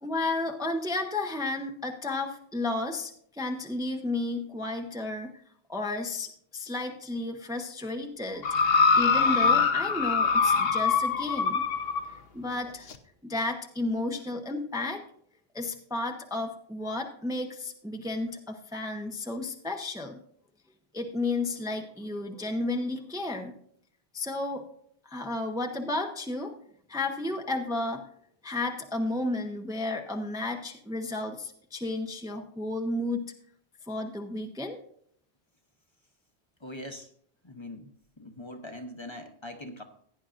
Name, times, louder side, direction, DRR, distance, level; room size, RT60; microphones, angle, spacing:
voice 1, 0.0-5.3 5.7-8.4 9.0-11.6 12.1-12.9 13.2-15.0 15.5-20.2 20.9-23.5 24.1-24.7 25.0-26.5 26.9-28.0 28.4-33.2 33.9-34.8, left 2 dB, 5° right, 3 dB, 0.8 m, -32 dB
sound 1, 8.4-12.1 12.9-13.0, left 5 dB, 65° left, 1.0 m, -23 dB
voice 2, 36.6-37.1 37.4-37.9 38.2-39.8, left 1 dB, 25° left, 4 dB, 1.0 m, -42 dB
16.5 x 10.0 x 2.5 m, 0.64 s
omnidirectional pair, 1.1 m